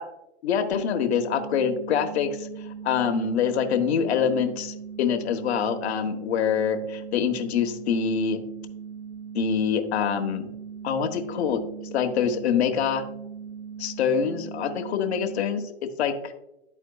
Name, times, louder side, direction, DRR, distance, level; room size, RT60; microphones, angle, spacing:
voice 1, 0.4-8.4 9.3-10.5 10.8-11.6 11.9-13.0 13.8-16.3, left 7 dB, 70° left, 6 dB, 1.0 m, -25 dB
sound 1, 0.7-15.4, right 7 dB, 65° right, 0.5 m, -39 dB
12.0 x 4.4 x 2.3 m, 0.88 s
hypercardioid pair, 145°, 34 cm